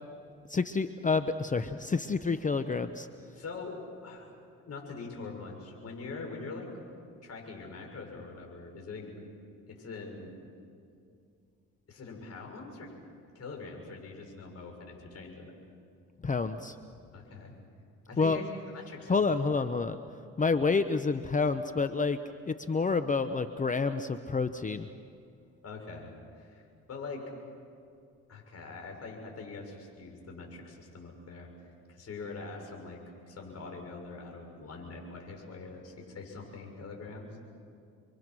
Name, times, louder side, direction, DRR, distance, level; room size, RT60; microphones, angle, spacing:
voice 1, 0.5-3.1 16.2-16.8 18.2-18.4 19.1-20.0 20.4-24.9, left 4 dB, 25° left, 10 dB, 0.8 m, -28 dB
voice 2, 3.4-4.3 4.6-6.7 7.1-9.1 9.7-10.4 11.9-12.9 13.3-15.5 17.1-17.5 18.1-18.4 18.7-19.1 25.6-26.6 26.9-27.2 28.3-31.5 31.9-33.0 33.3-37.4, left 4 dB, 55° left, 1 dB, 6.4 m, -43 dB
29.5 x 23.5 x 6.2 m, 2.4 s
cardioid pair, 90°, 30 cm